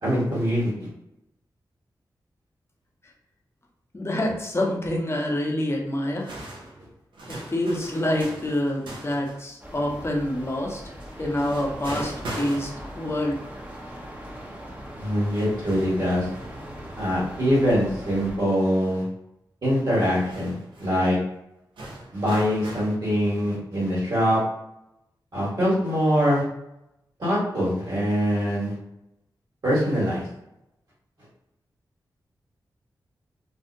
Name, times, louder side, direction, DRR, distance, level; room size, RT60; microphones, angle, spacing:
voice 1, 0.0-0.7 15.0-16.3 17.0-19.0 19.6-21.2 22.1-24.4 25.3-26.4 27.2-28.7 29.6-30.3, equal, 60° right, -8 dB, 1.4 m, -23 dB
voice 2, 3.9-6.4 7.4-10.8 11.2-12.7 13.0-13.3, left 1 dB, 30° left, 0 dB, 0.7 m, -26 dB
sound 1, 6.2-9.5 11.0-13.2 13.7-13.8 14.9-15.0 15.2-17.5 17.9-18.0 19.8-20.9 21.8-22.9, right 1 dB, 85° right, 0.6 m, -40 dB
sound 2, 9.6-18.4, equal, 20° right, 0.7 m, -40 dB
2.6 x 2.1 x 2.6 m, 0.87 s
cardioid pair, 40°, 8 cm